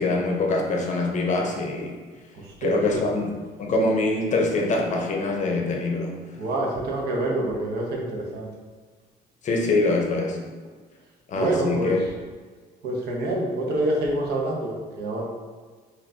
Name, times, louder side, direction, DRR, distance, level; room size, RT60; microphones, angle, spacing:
voice 1, 0.0-2.0 2.6-3.3 3.6-6.1 9.4-10.4 11.3-12.0, left 2 dB, 45° left, 0 dB, 0.7 m, -24 dB
voice 2, 2.3-3.0 6.4-8.5 11.3-12.1 12.8-15.2, right 1 dB, 75° right, -2 dB, 0.9 m, -27 dB
4.3 x 2.6 x 2.7 m, 1.5 s
cardioid pair, 110°, 17 cm